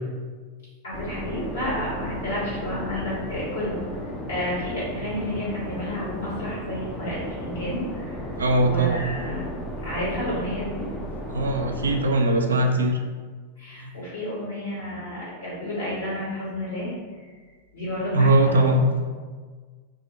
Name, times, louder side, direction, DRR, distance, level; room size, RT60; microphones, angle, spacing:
voice 1, 0.8-4.0 4.3-8.3 8.6-10.8 13.6-16.9 17.7-18.7, left 1 dB, 65° left, -8 dB, 1.4 m, -31 dB
sound 1, 0.9-12.0, equal, 15° left, 0.5 m, -34 dB
voice 2, 8.4-9.1 11.3-13.0 13.8-13.9 18.1-19.1, right 1 dB, 70° right, 4 dB, 0.3 m, -21 dB
2.5 x 2.0 x 3.8 m, 1.5 s
figure-of-eight pair, 90°, 0 cm